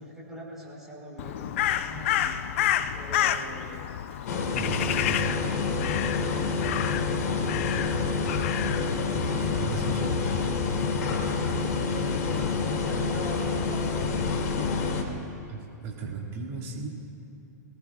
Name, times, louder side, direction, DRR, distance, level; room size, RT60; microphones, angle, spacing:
voice 1, 0.0-2.3 2.9-3.9 4.3-5.8 12.6-14.3, right 1 dB, 5° right, -6 dB, 4.6 m, -42 dB
Crow, 1.2-14.9, left 11 dB, 45° left, 0.5 m, -31 dB
sound 1, 4.3-15.0, left 4 dB, 65° left, 2.6 m, -28 dB
voice 2, 4.5-5.3 9.1-10.4 15.5-16.9, right 4 dB, 30° right, -2 dB, 2.2 m, -36 dB
29.5 x 19.0 x 2.5 m, 2.7 s
hypercardioid pair, 160°, 10 cm